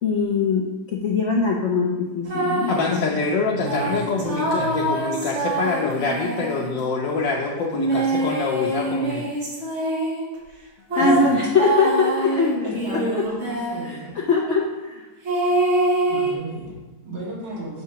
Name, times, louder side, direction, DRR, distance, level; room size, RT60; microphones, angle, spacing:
voice 1, 0.0-3.2 10.9-13.2 13.8-14.6, left 4 dB, 65° left, -2 dB, 0.7 m, -22 dB
sound 1, 2.3-2.9 3.6-6.9 7.7-10.3 10.9-14.0 15.2-16.4, right 2 dB, 40° right, 1.3 m, -25 dB
voice 2, 2.7-9.2, left 4 dB, 85° left, -2 dB, 1.4 m, -25 dB
voice 3, 3.4-4.9 10.9-11.1 12.6-14.1 15.2-15.4 16.1-17.8, right 1 dB, 75° right, -7 dB, 2.4 m, -34 dB
7.0 x 2.8 x 5.6 m, 1.2 s
omnidirectional pair, 2.0 m